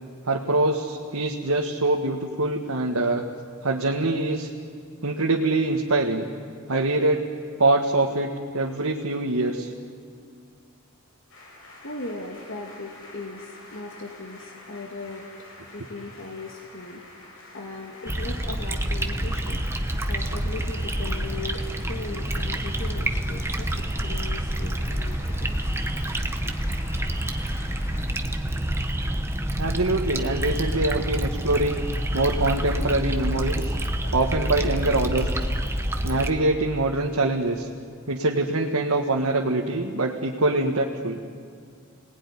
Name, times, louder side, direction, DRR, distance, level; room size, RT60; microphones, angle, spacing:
voice 1, 0.2-3.2 3.6-4.5 5.0-6.2 6.7-7.2 7.6-9.7 29.6-31.8 32.1-33.7 34.1-35.3 36.0-37.7 38.1-41.2, right 2 dB, 80° right, 0 dB, 1.6 m, -24 dB
sound 1, 11.3-28.0, left 2 dB, 75° left, 6.0 m, -47 dB
voice 2, 11.8-15.3 15.7-17.2 17.5-21.6 21.9-25.6 34.0-34.1, left 3 dB, 55° left, 0 dB, 2.1 m, -38 dB
sound 2, 18.1-36.3, right 1 dB, 10° right, 1.1 m, -27 dB
29.0 x 19.0 x 9.8 m, 2.2 s
head